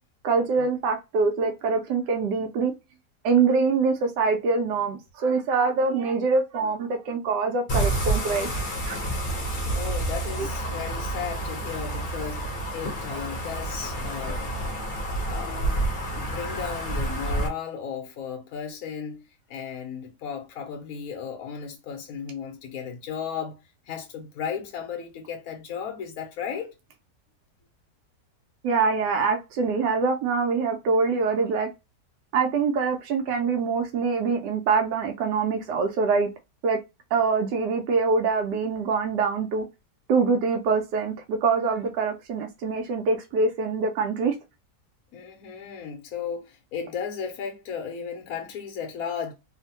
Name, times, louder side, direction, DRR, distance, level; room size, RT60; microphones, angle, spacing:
voice 1, 0.2-2.7 3.2-8.5 8.8-9.0 10.4-10.5 14.2-14.3 28.6-31.7 32.3-36.3 36.6-36.8 37.1-39.6 40.1-44.3, right 4 dB, 80° right, 1.2 m, -24 dB
sound 1, 7.7-17.5, right 1 dB, 40° left, 0.8 m, -29 dB
voice 2, 9.7-14.5 15.3-15.6 16.2-19.2 19.5-23.6 23.9-26.7 45.1-49.3, left 7 dB, 70° left, 1.0 m, -35 dB
3.0 x 2.1 x 2.8 m
omnidirectional pair, 1.8 m